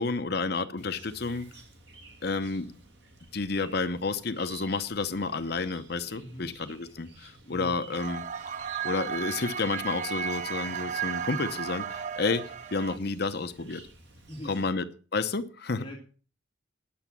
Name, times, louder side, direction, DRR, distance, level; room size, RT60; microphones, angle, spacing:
voice 1, 0.0-1.5 2.2-2.6 3.3-8.2 8.8-12.4 12.7-13.8 14.4-14.8 15.1-15.8, left 3 dB, 60° left, 10 dB, 0.9 m, -30 dB
Chirp tweet, 0.8-14.7, right 3 dB, 65° right, 2.1 m, -53 dB
voice 2, 6.2-6.5 7.4-7.7 14.3-14.7 15.8-16.0, equal, 25° left, -2 dB, 2.3 m, -42 dB
sound 1, 7.9-13.0, right 7 dB, 40° right, 0.5 m, -34 dB
10.5 x 6.9 x 7.4 m, 0.38 s
head